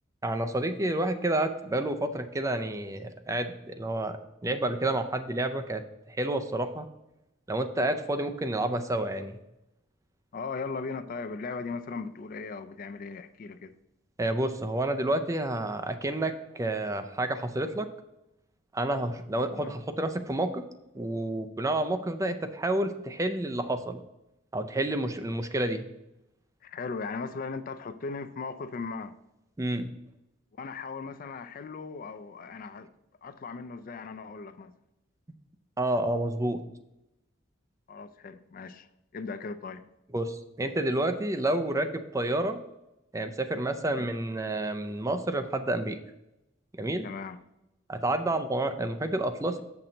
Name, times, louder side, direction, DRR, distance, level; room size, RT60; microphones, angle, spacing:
voice 1, 0.2-4.2 4.4-6.9 7.5-9.4 14.2-17.9 18.7-20.6 20.9-24.0 24.5-25.9 29.6-29.9 35.8-36.6 40.1-42.6 43.1-46.0 46.8-47.1 47.9-49.6, right 1 dB, 15° right, 0.4 m, -29 dB
voice 2, 10.3-13.7 19.5-19.8 26.6-29.2 30.5-32.9 33.2-34.8 37.9-38.9 39.1-39.9 43.9-44.1 47.0-47.4, left 4 dB, 45° left, 0.4 m, -38 dB
7.4 x 5.9 x 3.9 m
head